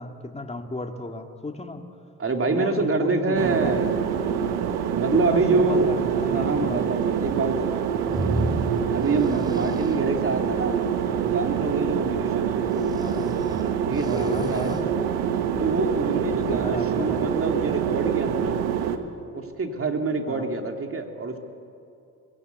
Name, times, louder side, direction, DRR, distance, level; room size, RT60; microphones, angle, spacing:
voice 1, 0.0-1.9 2.5-3.7 5.1-6.8 9.3-9.8 13.0-13.3 14.1-14.8 16.3-17.3 20.3-20.5, left 2 dB, 15° left, 5 dB, 2.2 m, -34 dB
voice 2, 2.2-4.1 4.9-5.9 6.2-8.0 8.9-10.8 11.2-12.6 13.9-14.7 15.6-18.6 19.3-21.4, right 3 dB, 40° right, 4 dB, 2.9 m, -26 dB
sound 1, 3.3-19.0, right 7 dB, 85° right, 1.4 m, -26 dB
sound 2, 8.1-10.0 12.8-14.8, right 1 dB, 10° right, 3.1 m, -32 dB
21.0 x 17.0 x 8.3 m, 2.6 s
supercardioid pair, 65°, 36 cm